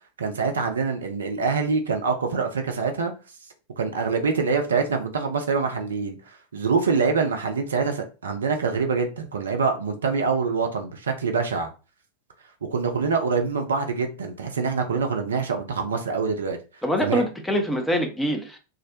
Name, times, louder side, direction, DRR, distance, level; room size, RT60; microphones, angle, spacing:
voice 1, 0.2-3.1 3.8-6.2 6.5-11.7 12.6-16.6 17.0-17.2, right 5 dB, 70° right, 0.4 m, -25 dB
voice 2, 16.8-18.6, equal, 5° left, 0.5 m, -24 dB
2.4 x 2.0 x 2.6 m
figure-of-eight pair, 90°, 0 cm